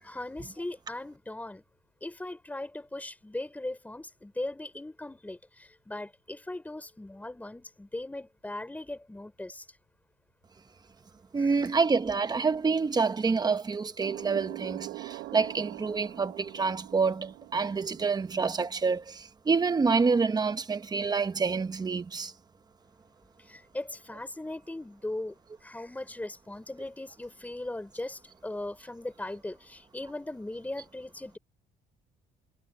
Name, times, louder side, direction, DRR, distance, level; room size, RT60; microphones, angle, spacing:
voice 1, 0.0-1.6 2.0-9.6 11.4-11.6 23.5-25.3 25.6-31.4, left 2 dB, 10° left, 5.0 m, -39 dB
voice 2, 11.3-22.3, right 4 dB, 25° right, 1.1 m, -27 dB
sound 1, 14.0-18.7, right 18 dB, 90° right, 6.6 m, -43 dB
cardioid pair, 110°, 17 cm